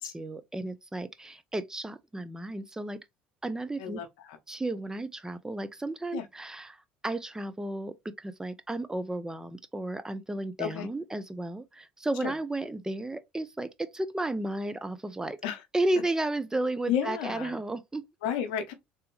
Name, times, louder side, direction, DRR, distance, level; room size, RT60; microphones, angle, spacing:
voice 1, 0.0-3.0 3.4-4.0 4.5-15.4 15.7-18.0, right 2 dB, 10° right, 0.5 m, -33 dB
voice 2, 3.8-4.4 6.1-6.3 10.6-10.9 12.2-12.3 15.4-15.6 16.9-17.6 18.2-18.7, left 9 dB, 75° left, 0.8 m, -32 dB
3.3 x 2.9 x 3.1 m
hypercardioid pair, 65°, 5 cm